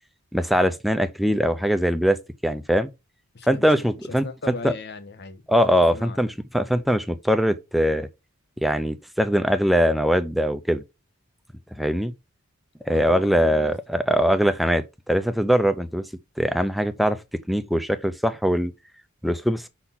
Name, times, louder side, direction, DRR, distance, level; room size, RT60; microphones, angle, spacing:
voice 1, 0.3-2.9 3.5-4.2 4.6-4.7 5.5-8.1 8.6-10.8 11.8-12.1 12.8-16.1 16.4-17.2 17.5-18.7 19.2-19.7, equal, ahead, 0.6 m, -22 dB
voice 2, 3.3-5.4 5.7-6.2 12.9-13.8, left 3 dB, 50° left, 1.0 m, -38 dB
5.6 x 4.2 x 5.8 m
head